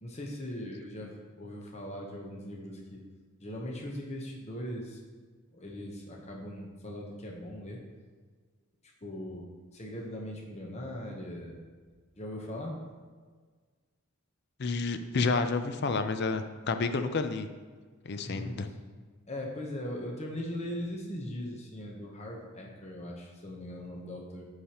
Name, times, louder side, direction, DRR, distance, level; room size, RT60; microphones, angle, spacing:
voice 1, 0.0-3.0 3.4-5.0 5.5-7.8 9.0-11.7 12.2-12.8 18.2-18.6 19.3-24.5, left 1 dB, 30° left, 0 dB, 1.0 m, -40 dB
voice 2, 14.6-17.5 18.0-18.7, left 4 dB, 50° left, 9 dB, 0.5 m, -30 dB
11.0 x 4.9 x 3.0 m, 1.5 s
head